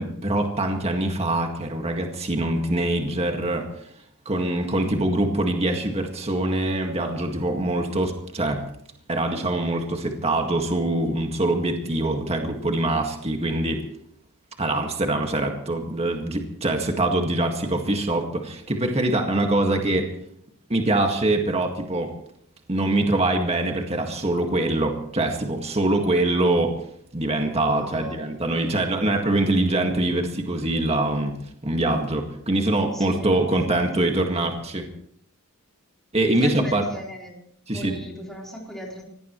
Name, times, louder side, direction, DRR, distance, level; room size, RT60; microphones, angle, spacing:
voice 1, 0.0-3.9 4.3-8.6 9.1-13.8 14.6-20.1 20.7-22.1 22.7-26.9 27.1-34.9 36.1-36.8 37.7-38.0, right 2 dB, 30° right, 3 dB, 1.9 m, -24 dB
voice 2, 27.7-28.4 32.9-33.4 33.7-33.8 36.4-37.3 37.7-39.0, equal, ahead, -3 dB, 4.2 m, -37 dB
24.5 x 18.0 x 3.2 m, 0.69 s
head